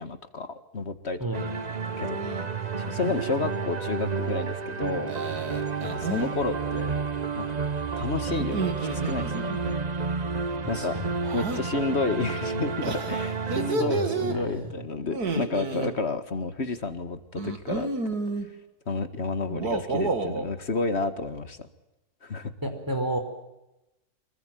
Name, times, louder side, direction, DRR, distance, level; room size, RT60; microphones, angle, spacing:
voice 1, 0.0-1.2 2.0-2.2 2.8-5.1 5.8-6.9 7.3-7.6 8.0-9.5 10.7-10.9 11.3-17.9 18.9-21.7 22.2-22.5, left 3 dB, 45° left, 11 dB, 2.0 m, -30 dB
sound 1, 1.3-13.7, right 5 dB, 30° right, 1.0 m, -31 dB
sound 2, 2.1-2.5 2.8-3.4 5.1-6.3 8.4-9.8 11.2-11.6 12.8-14.4 15.1-15.9 17.4-18.5 19.5-20.5, right 4 dB, 90° right, 3.1 m, -30 dB
voice 2, 10.7-11.1 13.8-14.7 22.6-23.2, equal, 10° right, 5 dB, 5.0 m, -30 dB
25.5 x 22.0 x 9.2 m, 0.95 s
omnidirectional pair, 1.6 m